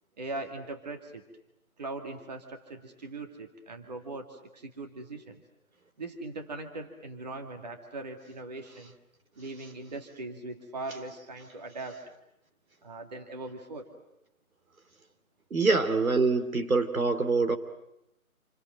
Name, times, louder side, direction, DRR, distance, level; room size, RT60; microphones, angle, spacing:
voice 1, 0.2-1.3 1.8-5.4 6.0-8.9 9.4-12.0 12.8-13.9, right 2 dB, 30° right, 4 dB, 2.2 m, -40 dB
voice 2, 15.5-17.6, right 3 dB, 70° right, 8 dB, 3.0 m, -25 dB
28.5 x 27.0 x 7.8 m, 0.84 s
figure-of-eight pair, 165°, 43 cm